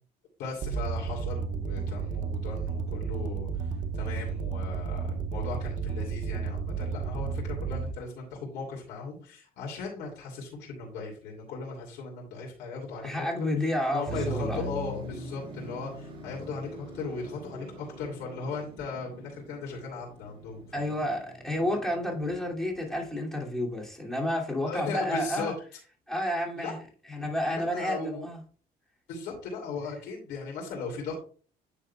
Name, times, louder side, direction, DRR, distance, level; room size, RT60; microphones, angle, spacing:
voice 1, 0.4-3.7 3.9-13.5 13.9-21.1 24.7-25.5 26.6-26.7 27.5-28.3 29.1-31.2, left 4 dB, 85° left, 2.7 m, -37 dB
sound 1, 0.6-7.9, right 6 dB, 50° right, 0.7 m, -32 dB
voice 2, 13.0-14.7 20.7-25.5 26.1-26.8 27.1-28.4, left 1 dB, 5° left, 2.5 m, -30 dB
Motor vehicle (road), 14.0-23.0, right 3 dB, 30° right, 3.7 m, -41 dB
9.2 x 6.6 x 2.3 m
cardioid pair, 110°, 17 cm